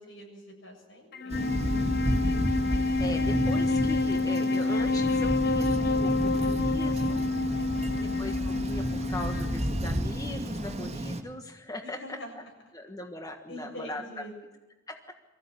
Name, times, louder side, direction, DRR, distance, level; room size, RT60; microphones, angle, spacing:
voice 1, 0.0-1.5 7.6-8.1 11.8-12.3 13.5-14.3, left 1 dB, 75° left, 1 dB, 7.4 m, -45 dB
Wind instrument woodwind instrument, 1.1-10.6, left 3 dB, 55° left, 0.6 m, -28 dB
Thunder, 1.3-11.2, equal, 35° right, 1.9 m, -31 dB
voice 2, 3.0-7.2 7.9-12.4 12.7-14.0 14.9-15.0, left 1 dB, 20° left, 4 dB, 1.5 m, -39 dB
24.0 x 15.0 x 8.7 m, 1.2 s
head